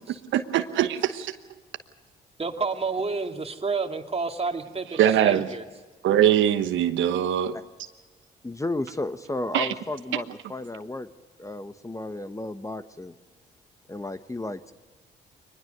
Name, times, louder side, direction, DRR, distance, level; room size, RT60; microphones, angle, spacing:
voice 1, 0.3-1.4 5.0-5.5 6.0-7.6 9.5-9.7 10.1-10.2, right 10 dB, 70° right, 9 dB, 1.1 m, -22 dB
voice 2, 2.4-5.6, right 4 dB, 30° right, 5 dB, 2.3 m, -30 dB
voice 3, 8.4-11.1 11.4-13.1 13.9-14.7, left 2 dB, 15° left, 11 dB, 1.1 m, -33 dB
23.0 x 20.0 x 6.6 m, 1.3 s
hypercardioid pair, 55°, 20 cm